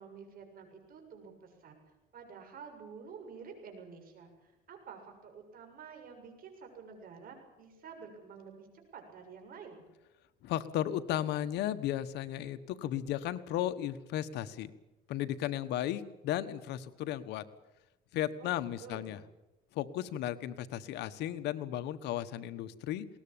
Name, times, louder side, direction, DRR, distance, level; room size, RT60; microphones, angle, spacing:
voice 1, 0.0-1.7 2.1-8.7 8.9-9.9 18.4-19.1, right 6 dB, 60° right, 4 dB, 7.0 m, -50 dB
voice 2, 10.4-14.7 15.1-17.4 18.1-19.2 19.7-23.1, left 12 dB, 85° left, 12 dB, 1.3 m, -35 dB
21.0 x 19.0 x 8.7 m, 0.99 s
cardioid pair, 110°, 17 cm